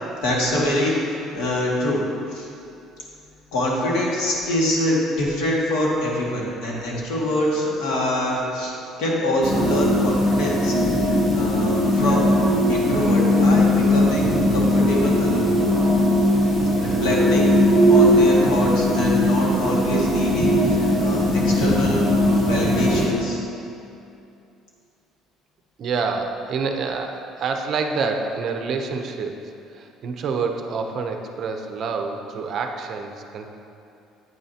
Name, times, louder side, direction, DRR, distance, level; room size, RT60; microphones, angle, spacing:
voice 1, 0.2-2.1 2.3-2.5 3.5-12.2 12.7-15.5 16.8-17.6 17.9-22.1 22.4-23.4, left 1 dB, 85° left, -4 dB, 1.9 m, -25 dB
sound 1, 9.4-23.1, left 1 dB, 20° left, 1.5 m, -19 dB
voice 2, 25.8-29.3 29.7-33.5, right 4 dB, 40° right, 4 dB, 0.6 m, -27 dB
9.0 x 9.0 x 2.8 m, 2.6 s
cardioid pair, 175°, 0 cm